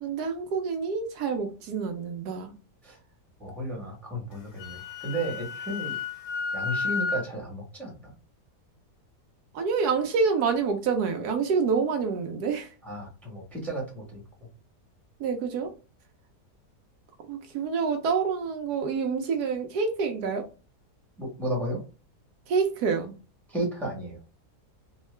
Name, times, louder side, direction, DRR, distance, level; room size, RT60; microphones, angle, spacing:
voice 1, 0.0-2.5 9.5-12.7 15.2-15.7 17.3-20.5 22.5-23.1, right 5 dB, 75° right, 1.1 m, -27 dB
voice 2, 3.4-6.0 6.5-8.1 12.8-14.2 21.2-21.8 23.5-24.2, right 1 dB, ahead, 1.0 m, -33 dB
Wind instrument woodwind instrument, 4.3-7.3, left 5 dB, 50° left, 0.6 m, -32 dB
3.6 x 2.3 x 3.2 m
omnidirectional pair, 1.8 m